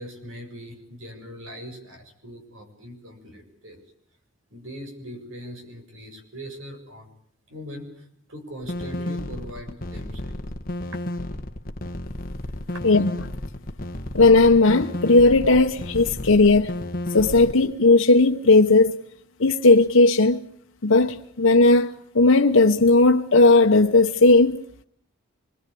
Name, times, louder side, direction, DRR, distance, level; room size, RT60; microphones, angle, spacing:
voice 1, 0.0-3.8 4.5-7.1 7.5-10.4 10.9-11.0 12.7-12.8, equal, 85° right, 6.9 m, -40 dB
sound 1, 8.6-17.5, left 1 dB, 45° left, 1.5 m, -32 dB
voice 2, 14.1-16.7 17.1-19.0 19.4-20.4 20.8-24.6, left 3 dB, 85° left, 1.1 m, -16 dB
25.5 x 22.5 x 8.5 m
head